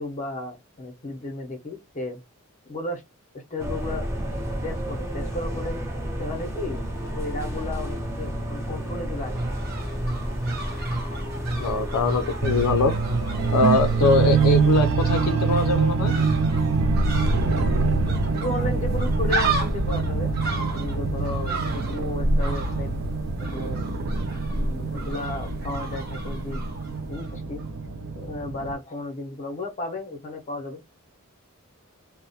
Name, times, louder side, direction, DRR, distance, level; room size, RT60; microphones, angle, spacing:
voice 1, 0.0-2.2 2.7-3.0 3.3-5.8 6.2-6.8 7.1-9.4 18.3-22.9 23.5-23.8 24.5-26.6 27.1-27.6 28.2-30.8, left 2 dB, 35° left, 0.6 m, -34 dB
sound 1, 3.6-14.8, right 1 dB, 15° right, 0.6 m, -30 dB
sound 2, 9.2-27.3 27.6-27.7, right 1 dB, 45° right, 0.8 m, -31 dB
voice 2, 11.6-12.9 13.5-16.1, left 3 dB, 90° left, 0.3 m, -22 dB
sound 3, 12.4-28.7, right 4 dB, 65° right, 0.4 m, -25 dB
2.3 x 2.0 x 2.6 m
head